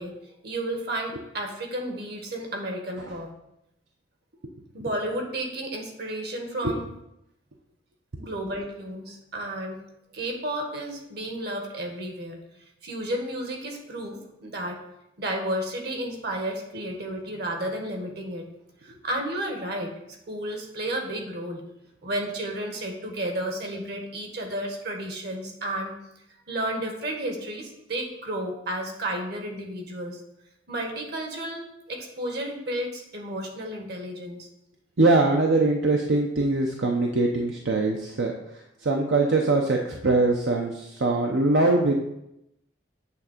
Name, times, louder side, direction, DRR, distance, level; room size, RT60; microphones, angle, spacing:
voice 1, 0.0-3.3 4.7-6.9 8.2-9.8 10.1-12.4 12.8-14.8 15.2-18.5 18.8-19.9 20.3-21.6 22.0-25.9 26.5-30.2 30.7-34.5, right 1 dB, 65° right, 2 dB, 1.7 m, -32 dB
voice 2, 35.0-38.3 38.8-41.9, right 2 dB, 80° right, 1 dB, 0.8 m, -22 dB
8.5 x 3.6 x 6.6 m, 0.84 s
head